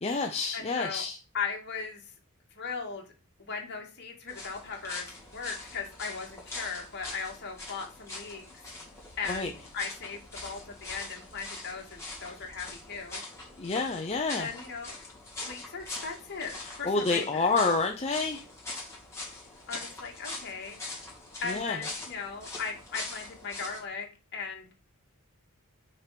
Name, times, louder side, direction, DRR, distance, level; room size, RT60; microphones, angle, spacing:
voice 1, 0.0-1.2 9.3-9.5 13.6-14.5 16.6-18.4 21.4-21.8, left 3 dB, 30° left, 3 dB, 0.7 m, -28 dB
voice 2, 0.5-1.0 1.3-2.1 2.5-3.0 3.4-8.4 9.2-13.2 14.4-14.9 15.4-17.5 19.7-20.8 21.4-24.7, left 5 dB, 50° left, 1 dB, 2.2 m, -38 dB
sound 1, 4.3-23.8, left 2 dB, 15° left, 3.0 m, -43 dB
6.1 x 4.7 x 6.0 m, 0.34 s
head